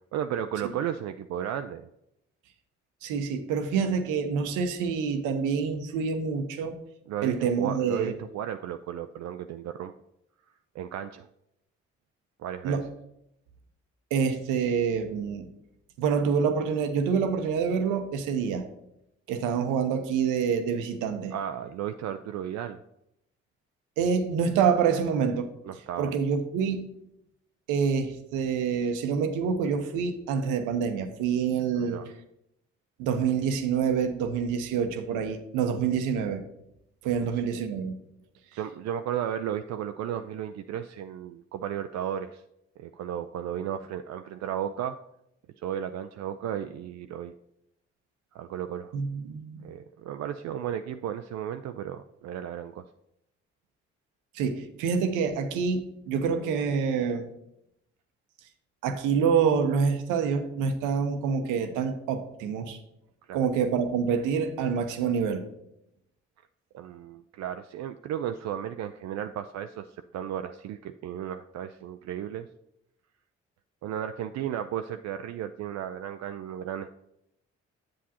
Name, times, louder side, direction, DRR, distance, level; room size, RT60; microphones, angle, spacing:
voice 1, 0.1-1.9 7.1-9.9 10.7-11.3 12.4-12.8 21.3-22.8 25.6-26.1 31.7-32.1 37.1-37.4 38.5-42.4 42.8-45.0 45.6-47.3 48.3-49.0 49.6-52.9 63.3-63.5 66.7-69.9 70.1-72.5 73.8-76.9, right 10 dB, 60° right, 8 dB, 0.4 m, -34 dB
voice 2, 3.0-6.7 7.2-8.1 12.6-12.8 14.1-15.5 16.0-18.7 19.3-21.3 24.0-25.5 26.0-26.9 27.7-32.0 33.0-36.4 37.0-38.0 48.9-49.6 54.3-57.3 58.8-62.8 63.3-65.4, right 6 dB, 80° right, 7 dB, 0.8 m, -27 dB
7.7 x 7.2 x 2.8 m, 0.82 s
hypercardioid pair, 45°, 31 cm